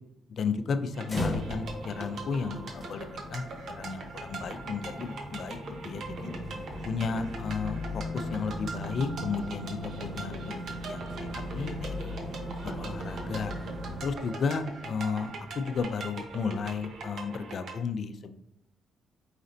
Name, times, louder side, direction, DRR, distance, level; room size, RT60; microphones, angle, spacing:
voice 1, 0.3-3.4 3.8-5.6 5.8-6.3 6.8-12.1 12.6-13.5 14.0-18.4, left 5 dB, 55° left, 9 dB, 0.4 m, -33 dB
sound 1, 0.9-17.8, right 3 dB, 65° right, 0.9 m, -42 dB
sound 2, 1.0-14.0, left 1 dB, 15° left, 1.1 m, -38 dB
sound 3, 7.3-17.4, right 1 dB, 10° right, 0.7 m, -53 dB
5.1 x 4.0 x 2.6 m, 0.83 s
cardioid pair, 90°, 0 cm